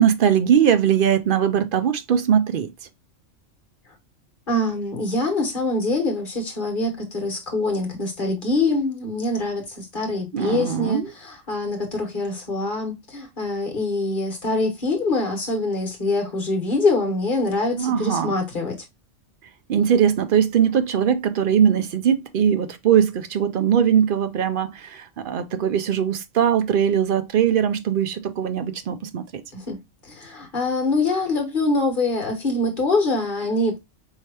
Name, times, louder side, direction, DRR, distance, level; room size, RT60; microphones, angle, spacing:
voice 1, 0.0-2.7 10.3-11.1 17.7-18.4 19.7-29.4, right 8 dB, 60° right, 0.6 m, -20 dB
voice 2, 4.5-18.7 29.5-29.8 30.0-33.8, left 2 dB, 40° left, 1.7 m, -24 dB
4.7 x 3.3 x 2.8 m
omnidirectional pair, 1.3 m